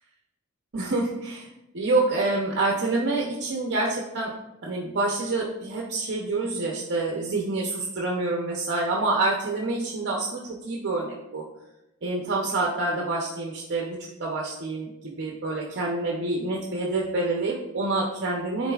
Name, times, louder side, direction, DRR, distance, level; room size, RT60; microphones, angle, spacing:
voice 1, 0.7-1.5 1.7-4.3 4.6-11.4 12.0-18.7, right 2 dB, 55° right, -1 dB, 0.7 m, -27 dB
10.0 x 4.0 x 2.4 m, 0.95 s
head